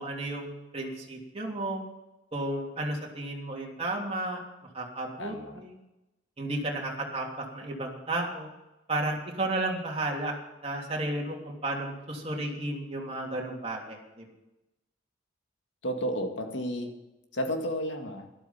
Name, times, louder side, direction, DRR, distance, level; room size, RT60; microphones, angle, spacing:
voice 1, 0.0-1.8 2.3-4.4 4.7-5.7 6.4-8.5 8.9-10.4 10.6-14.3, right 2 dB, 30° right, -1 dB, 3.0 m, -33 dB
voice 2, 5.2-5.6 15.8-16.9 17.3-18.3, equal, 75° left, 4 dB, 2.1 m, -32 dB
13.0 x 12.5 x 5.8 m, 0.95 s
head